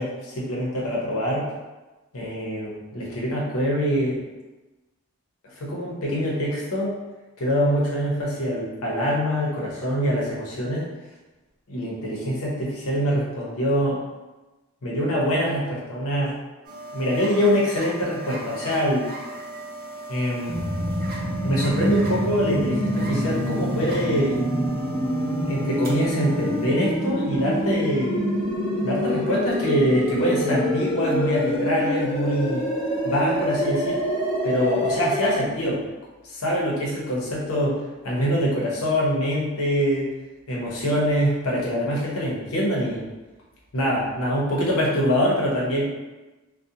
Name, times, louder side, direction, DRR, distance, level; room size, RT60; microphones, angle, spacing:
voice 1, 0.0-1.5 2.1-4.2 5.6-7.0 7.4-10.9 11.7-14.0 14.8-16.3 16.9-19.1 20.1-20.6 21.4-24.4 25.4-28.2 28.8-32.6 33.0-34.0 34.4-35.8 36.2-37.8 38.0-40.1 40.5-43.0 43.7-45.8, equal, 80° left, -4 dB, 0.8 m, -24 dB
sound 1, 16.6-26.7, right 2 dB, 45° right, 0.4 m, -37 dB
sound 2, 20.5-35.4, equal, 5° left, 0.6 m, -26 dB
2.4 x 2.2 x 2.7 m, 1.1 s
head